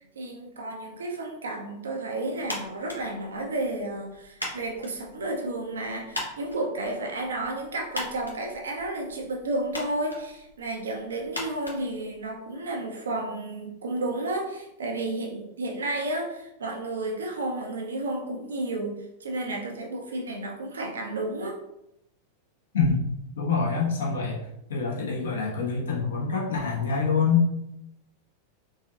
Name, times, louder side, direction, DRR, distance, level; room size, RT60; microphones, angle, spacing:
voice 1, 0.2-21.6, right 2 dB, 70° right, 0 dB, 0.6 m, -32 dB
sound 1, 2.4-12.6, left 1 dB, 85° left, 1.0 m, -41 dB
voice 2, 22.7-24.4 24.7-27.5, left 5 dB, 65° left, -4 dB, 1.2 m, -25 dB
4.0 x 3.7 x 2.4 m, 0.84 s
figure-of-eight pair, 90°, 0 cm